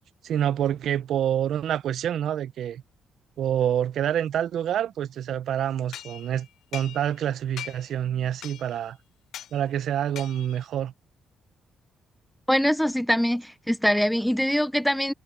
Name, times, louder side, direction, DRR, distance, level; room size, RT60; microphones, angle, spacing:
voice 1, 0.2-2.8 3.4-9.0 9.5-10.9, right 10 dB, 70° right, 0.6 m, -27 dB
sound 1, 5.9-7.3 7.6-8.0 8.4-8.9 9.3-9.6 10.2-10.7, left 11 dB, 75° left, 0.8 m, -41 dB
voice 2, 12.5-15.1, equal, ahead, 0.5 m, -23 dB
cardioid pair, 90°, 0 cm